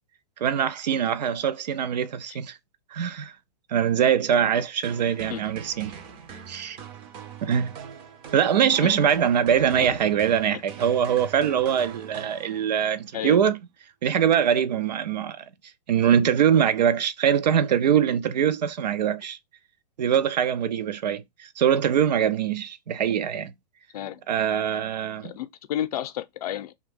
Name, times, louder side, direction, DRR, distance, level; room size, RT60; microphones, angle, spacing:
voice 1, 0.4-2.6 2.9-3.3 3.7-5.9 6.5-6.8 7.4-7.7 8.3-13.6 14.0-15.4 15.9-19.4 20.0-23.5 24.3-25.3, right 8 dB, 85° right, 0.5 m, -23 dB
sound 1, 4.8-13.0, right 7 dB, 25° right, 0.4 m, -42 dB
voice 2, 25.2-26.7, left 11 dB, 65° left, 0.5 m, -31 dB
2.8 x 2.2 x 3.4 m
hypercardioid pair, 135°, 21 cm